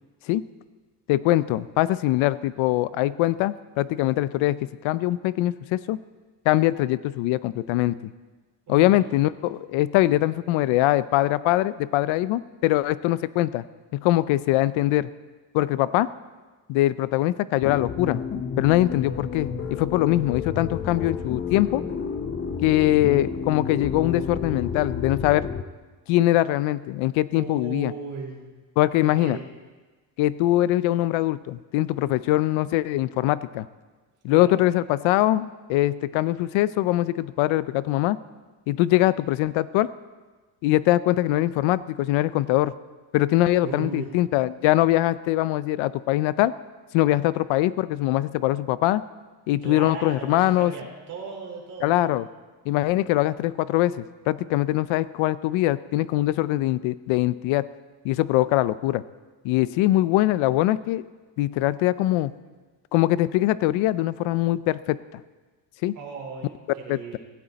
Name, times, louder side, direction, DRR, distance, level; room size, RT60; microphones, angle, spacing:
voice 1, 1.1-6.0 6.5-7.9 8.7-13.6 13.9-15.1 15.5-16.1 16.7-18.2 18.6-21.8 22.6-25.5 26.1-27.9 28.8-29.4 30.2-33.7 34.2-38.2 38.7-39.9 40.6-42.7 43.1-46.5 46.9-49.0 49.5-50.7 51.8-52.3 52.7-57.7 58.0-59.0 59.4-61.0 61.4-62.3 62.9-65.2 65.8-65.9 66.9-67.2, left 15 dB, 90° left, 16 dB, 0.6 m, -22 dB
voice 2, 8.7-9.0 27.3-28.5 29.0-29.5 34.3-34.5 43.6-44.1 49.6-52.0 65.9-67.2, right 5 dB, 40° right, -2 dB, 4.3 m, -36 dB
sound 1, 17.6-25.6, left 6 dB, 30° left, 0.7 m, -31 dB
17.0 x 16.5 x 4.1 m, 1.3 s
cardioid pair, 175°, 46 cm